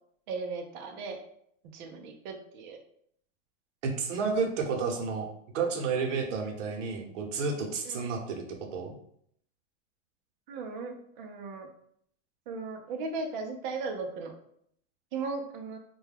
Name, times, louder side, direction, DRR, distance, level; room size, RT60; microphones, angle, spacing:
voice 1, 0.3-1.2 1.7-2.8 7.8-8.2 10.5-11.7 12.5-14.3 15.1-15.8, right 4 dB, 40° right, 3 dB, 0.4 m, -37 dB
voice 2, 3.8-5.3 5.5-8.9, right 5 dB, 70° right, 1 dB, 0.8 m, -31 dB
2.2 x 2.1 x 3.3 m, 0.69 s
supercardioid pair, 155°, 37 cm